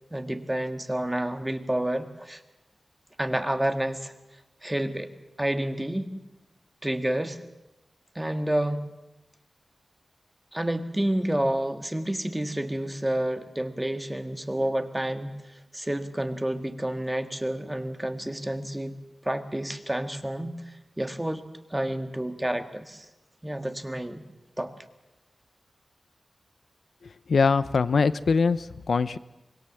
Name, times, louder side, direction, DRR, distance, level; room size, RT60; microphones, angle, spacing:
voice 1, 0.1-2.4 3.2-4.1 4.6-5.1 5.4-6.1 6.8-7.4 8.2-8.8 10.5-15.3 15.7-18.9 19.2-20.6 21.0-21.4 21.7-23.1 23.4-24.2 24.6-24.7, right 1 dB, 10° right, 7 dB, 1.7 m, -29 dB
voice 2, 27.3-29.2, left 5 dB, 75° left, 14 dB, 0.9 m, -22 dB
25.0 x 21.0 x 7.3 m, 0.98 s
wide cardioid pair, 110°, 0 cm